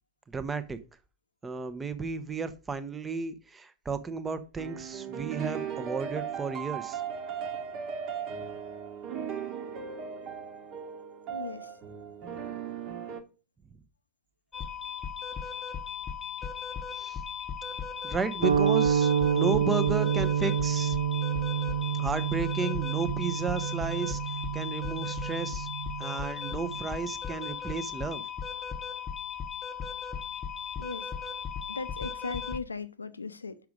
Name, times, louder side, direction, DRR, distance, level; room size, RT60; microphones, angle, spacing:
voice 1, 0.3-0.8 1.4-7.0 16.9-17.2 18.0-21.0 21.9-25.7 26.0-28.2, right 4 dB, 15° right, 0.8 m, -33 dB
sound 1, 4.6-13.2, right 7 dB, 35° right, 1.2 m, -37 dB
voice 2, 11.3-11.8 30.8-31.1 31.7-33.6, left 4 dB, 75° left, 0.5 m, -38 dB
sound 2, 14.5-32.6, left 7 dB, 20° left, 0.9 m, -37 dB
sound 3, 18.4-26.8, right 8 dB, 75° right, 0.3 m, -28 dB
6.3 x 5.9 x 5.0 m
figure-of-eight pair, 90°, 0 cm